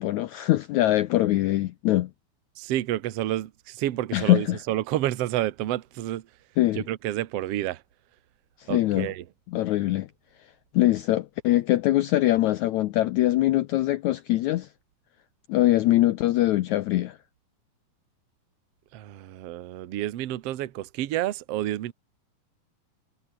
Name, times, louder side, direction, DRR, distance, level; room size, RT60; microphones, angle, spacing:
voice 1, 0.0-2.1 4.1-4.6 6.6-6.8 8.6-9.1 9.5-10.1 10.7-14.7 15.5-17.2, left 15 dB, 85° left, 1.7 m, -23 dB
voice 2, 2.6-6.2 6.7-7.8 8.7-9.2 18.9-21.9, right 13 dB, 65° right, 1.6 m, -29 dB
omnidirectional pair, 4.2 m